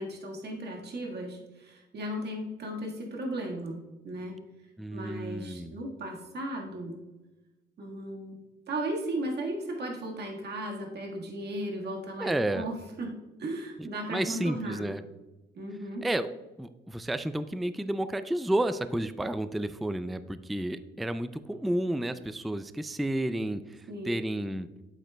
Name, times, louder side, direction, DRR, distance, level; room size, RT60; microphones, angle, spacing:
voice 1, 0.0-4.4 4.9-7.0 7.8-8.4 8.7-13.1 13.4-14.9 15.5-16.0 23.9-24.1, right 1 dB, 55° right, 0 dB, 1.6 m, -36 dB
voice 2, 4.8-5.8 12.2-12.7 13.8-15.0 16.0-16.3 16.6-24.7, right 1 dB, ahead, 12 dB, 0.3 m, -31 dB
8.6 x 7.9 x 2.2 m, 1.1 s
cardioid pair, 90°, 20 cm